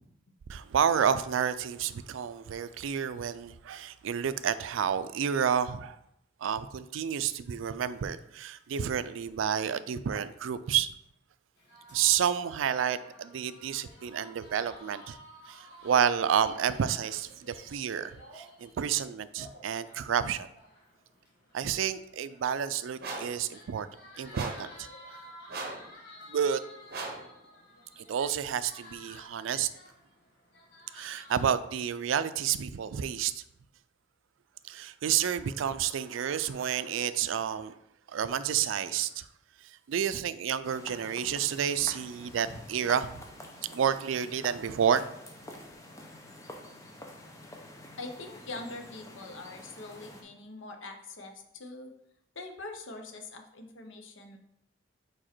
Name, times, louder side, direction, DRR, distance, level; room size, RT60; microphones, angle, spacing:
voice 1, 0.5-6.0 6.4-10.9 11.9-15.2 15.5-20.5 21.5-23.9 24.2-24.9 26.3-26.6 28.0-29.7 30.9-33.4 34.6-37.7 38.1-39.3 39.6-43.2 43.7-45.1, right 8 dB, 80° right, 14 dB, 0.4 m, -30 dB
sound 1, 11.6-31.4, left 1 dB, 60° left, 1.8 m, -53 dB
sound 2, 23.0-23.4 24.3-24.7 25.5-25.9 26.9-27.3, right 3 dB, 50° right, 1.0 m, -38 dB
sound 3, 40.6-50.2, left 1 dB, 15° left, 0.7 m, -48 dB
voice 2, 48.0-51.9 52.3-54.4, left 2 dB, 75° left, 4 dB, 0.9 m, -43 dB
4.9 x 4.7 x 4.4 m, 0.79 s
head